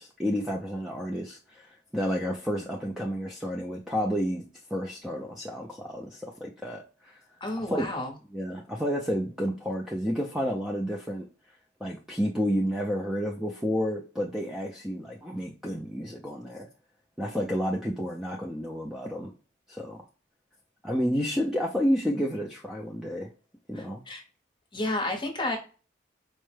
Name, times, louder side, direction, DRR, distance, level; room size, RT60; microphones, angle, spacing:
voice 1, 0.0-4.4 4.7-7.2 7.6-7.8 8.3-11.2 11.8-16.7 17.2-19.3 19.7-20.0 20.8-23.3 23.7-24.0, equal, ahead, -1 dB, 0.3 m, -30 dB
voice 2, 7.4-8.1 23.7-24.2 24.7-25.6, left 2 dB, 25° left, 2 dB, 0.8 m, -31 dB
4.4 x 2.1 x 3.1 m, 0.36 s
head